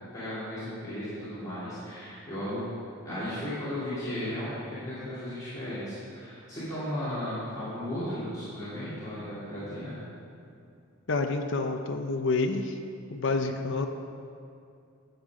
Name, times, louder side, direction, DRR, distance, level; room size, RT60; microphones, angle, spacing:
voice 1, 0.1-2.7 3.0-9.9, left 1 dB, 15° left, -13 dB, 2.8 m, -35 dB
voice 2, 11.1-12.8 13.1-13.9, left 3 dB, 55° left, 4 dB, 0.6 m, -28 dB
12.0 x 8.1 x 4.9 m, 2.5 s
head